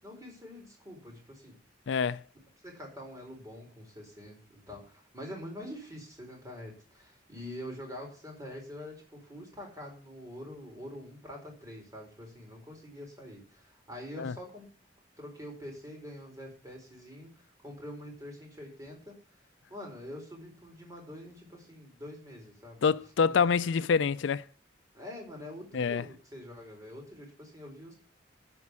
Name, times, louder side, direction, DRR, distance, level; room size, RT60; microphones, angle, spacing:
voice 1, 0.0-1.6 2.6-14.7 15.2-19.1 19.7-22.8 24.9-28.0, left 1 dB, 20° right, 4.6 m, -45 dB
voice 2, 1.9-2.2 14.2-14.3 22.8-24.4 25.7-26.1, left 6 dB, 80° left, 0.4 m, -26 dB
11.0 x 5.4 x 8.4 m
head